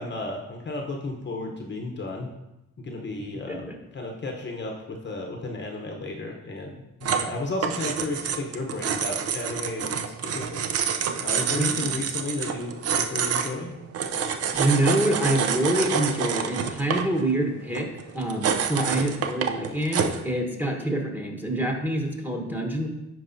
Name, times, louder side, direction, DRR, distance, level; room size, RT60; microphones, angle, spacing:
voice 1, 0.0-2.3 2.8-10.6 11.2-13.8, left 2 dB, 35° left, 1 dB, 0.9 m, -33 dB
sound 1, 7.0-20.3, right 7 dB, 55° right, 0.6 m, -28 dB
voice 2, 11.5-11.9 14.2-17.9 18.1-22.9, right 1 dB, 5° right, 1 dB, 1.2 m, -26 dB
9.9 x 4.7 x 2.6 m, 0.94 s
cardioid pair, 90°, 30 cm